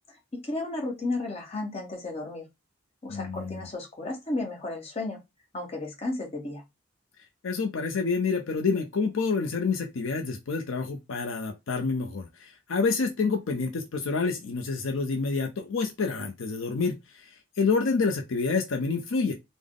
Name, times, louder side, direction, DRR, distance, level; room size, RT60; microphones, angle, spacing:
voice 1, 0.1-2.4 3.0-5.2 5.5-6.6, left 2 dB, 30° left, 1.0 m, -33 dB
voice 2, 3.1-3.7 7.4-17.3 17.6-19.3, left 4 dB, 70° left, 0.5 m, -28 dB
3.5 x 2.0 x 3.6 m
head